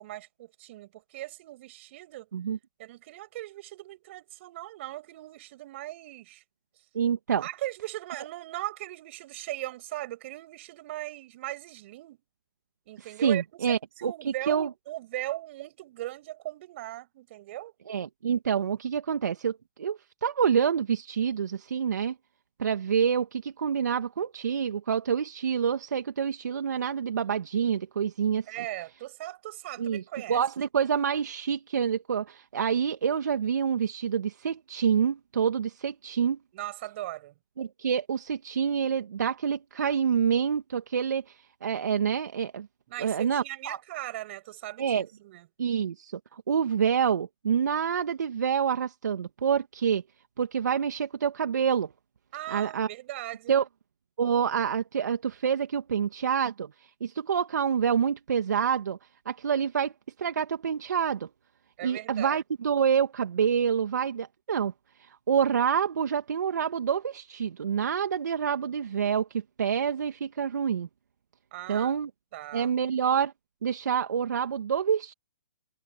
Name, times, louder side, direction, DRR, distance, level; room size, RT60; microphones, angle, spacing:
voice 1, 0.0-2.3 2.8-6.4 7.4-12.2 12.9-17.7 28.5-30.4 36.5-37.4 42.9-45.5 52.3-53.6 61.8-62.4 71.5-71.9 72.3-72.7, right 16 dB, 40° right, 8.0 m, -39 dB
voice 2, 6.9-7.4 13.2-14.1 14.5-14.7 17.9-22.1 22.6-28.5 29.8-30.0 30.3-36.4 37.6-41.3 41.6-42.7 43.0-43.8 44.8-45.1 45.6-50.0 50.4-51.9 52.5-52.9 53.5-53.6 54.2-56.7 57.0-59.0 59.3-59.9 60.2-61.3 61.8-64.7 65.3-70.9 71.7-72.1 72.5-73.3 73.6-75.1, right 7 dB, 70° right, 2.3 m, -27 dB
hypercardioid pair, 145°, 10 cm